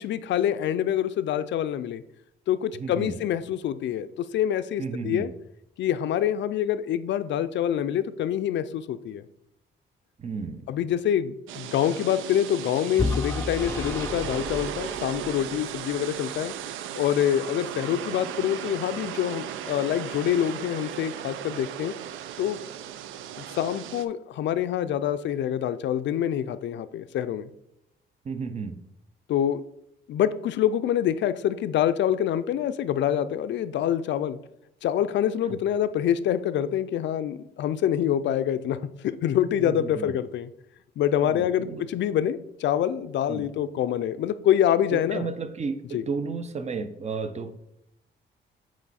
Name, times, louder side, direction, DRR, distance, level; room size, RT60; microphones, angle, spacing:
voice 1, 0.0-2.0 2.5-5.3 5.8-9.2 10.7-16.5 16.9-21.9 22.4-22.6 23.5-27.5 29.3-29.6 30.1-34.4 34.8-38.8 39.2-40.5 41.0-45.3 45.9-46.0, left 10 dB, 65° left, 13 dB, 0.4 m, -26 dB
voice 2, 2.7-3.2 4.8-5.3 10.2-10.6 28.2-28.8 39.6-40.1 41.2-41.9 43.3-43.5 44.9-47.5, right 5 dB, 35° right, 9 dB, 0.7 m, -33 dB
sound 1, 11.5-24.0, right 10 dB, 85° right, 0.4 m, -36 dB
Vehicle / Engine, 13.0-16.0, left 3 dB, 15° left, 0.5 m, -32 dB
8.5 x 3.1 x 4.1 m, 0.82 s
cardioid pair, 90°, 20 cm